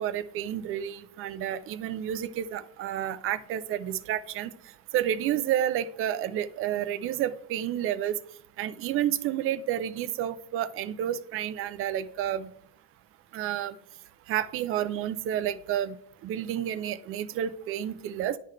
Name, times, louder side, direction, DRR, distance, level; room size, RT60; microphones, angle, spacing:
voice 1, 0.0-4.5 4.9-8.1 8.6-12.5 13.3-13.7 14.3-15.9 16.2-18.4, right 11 dB, 45° right, 13 dB, 0.4 m, -30 dB
11.0 x 3.8 x 3.2 m, 0.65 s
cardioid pair, 140°, 32 cm